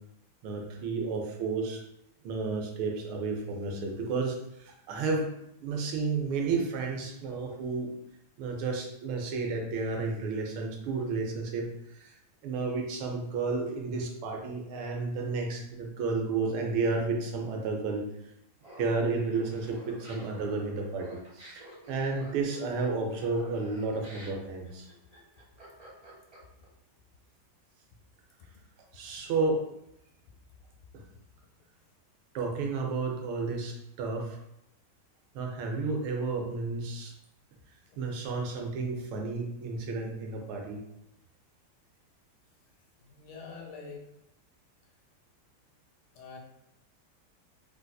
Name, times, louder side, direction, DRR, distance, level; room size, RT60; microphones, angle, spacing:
voice 1, 0.4-1.8 2.2-5.3 5.6-7.9 8.4-12.2 12.4-18.1 18.8-24.9 28.9-29.6 32.3-34.4 35.3-37.1 38.0-40.8, right 4 dB, 85° right, 1 dB, 1.5 m, -32 dB
Laughter, 18.6-26.7, equal, 30° right, 0.7 m, -51 dB
voice 2, 43.0-44.0 46.1-46.4, left 5 dB, 85° left, -1 dB, 1.6 m, -45 dB
4.0 x 2.6 x 2.2 m, 0.81 s
omnidirectional pair, 2.3 m